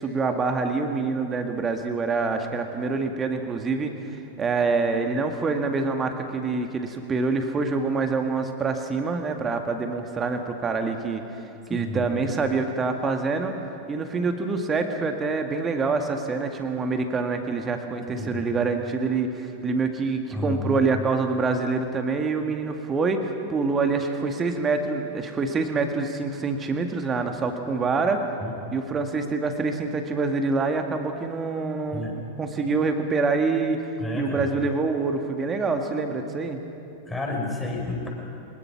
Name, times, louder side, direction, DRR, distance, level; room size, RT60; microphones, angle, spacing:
voice 1, 0.0-13.5 13.9-28.3 28.7-32.1 32.4-33.8 34.1-36.6, right 4 dB, 20° right, 5 dB, 2.0 m, -26 dB
voice 2, 11.7-12.1 18.1-18.4 20.3-20.8 28.4-28.5 31.9-32.2 34.0-34.5 37.0-38.1, left 2 dB, 10° left, -1 dB, 5.0 m, -31 dB
24.0 x 20.5 x 6.1 m, 2.8 s
figure-of-eight pair, 90°, 0 cm